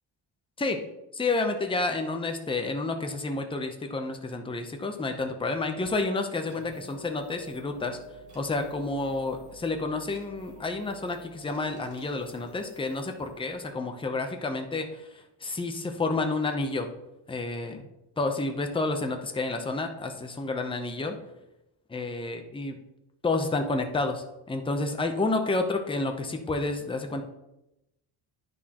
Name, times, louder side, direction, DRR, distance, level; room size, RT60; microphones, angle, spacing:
voice 1, 1.1-8.0 8.3-15.1 15.4-16.9 17.3-17.9 18.2-21.2 21.9-22.8 23.2-27.2, left 3 dB, 10° left, 5 dB, 0.6 m, -30 dB
sound 1, 6.5-13.7, right 1 dB, 15° right, 2.4 m, -49 dB
9.7 x 6.2 x 2.9 m, 0.88 s
wide cardioid pair, 155°, 46 cm